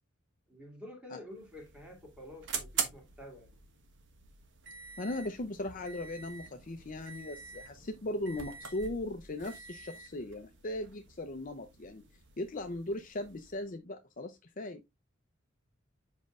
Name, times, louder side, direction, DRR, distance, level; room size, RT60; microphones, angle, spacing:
voice 1, 0.5-3.5, left 1 dB, 5° right, 2.3 m, -49 dB
sound 1, 1.3-13.7, right 6 dB, 60° right, 1.2 m, -44 dB
voice 2, 5.0-12.0 12.4-14.8, left 1 dB, 40° left, 0.7 m, -38 dB
7.4 x 5.2 x 2.5 m
head